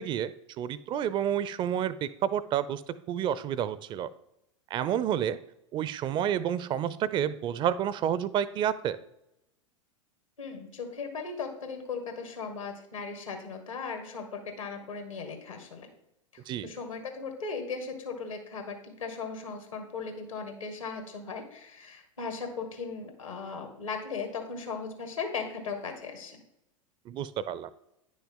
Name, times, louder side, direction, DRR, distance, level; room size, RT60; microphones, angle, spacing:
voice 1, 0.0-2.8 3.1-4.1 4.7-5.4 5.7-9.0 16.5-16.7 27.1-27.7, right 9 dB, 30° right, 17 dB, 0.4 m, -29 dB
voice 2, 10.4-15.9 16.3-26.4, left 5 dB, 80° left, 5 dB, 1.9 m, -37 dB
9.8 x 6.2 x 3.7 m, 0.85 s
figure-of-eight pair, 90°, 17 cm